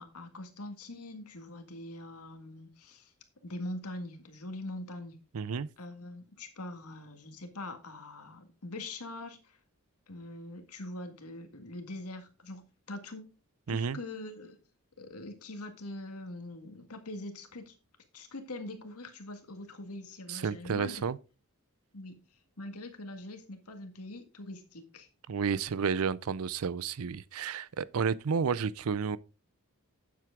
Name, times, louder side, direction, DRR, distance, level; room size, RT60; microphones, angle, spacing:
voice 1, 0.0-3.1 3.4-5.2 5.8-9.6 10.1-13.2 13.7-14.6 15.0-17.7 18.1-21.0 21.9-25.1, left 2 dB, 85° left, 1.8 m, -43 dB
voice 2, 5.3-5.7 13.7-14.0 20.3-21.2 25.3-29.2, right 6 dB, 70° right, 0.5 m, -31 dB
9.2 x 7.7 x 3.7 m
head